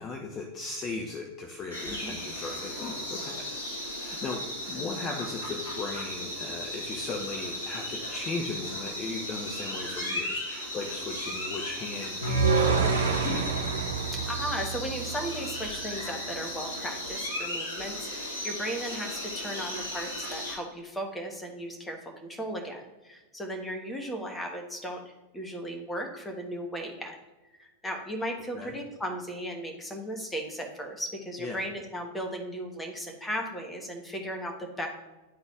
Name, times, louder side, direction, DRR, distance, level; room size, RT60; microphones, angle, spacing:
voice 1, 0.0-3.4 3.7-13.5 28.5-28.7 31.4-31.6, left 3 dB, 30° left, 2 dB, 0.8 m, -37 dB
sound 1, 1.7-20.6, left 1 dB, 65° left, 2.5 m, -36 dB
sound 2, 12.2-15.4, right 4 dB, 65° right, 1.0 m, -27 dB
voice 2, 14.3-27.2 27.6-34.9, equal, 10° left, 2 dB, 1.3 m, -36 dB
10.5 x 4.0 x 3.6 m, 1.1 s
figure-of-eight pair, 90°, 0 cm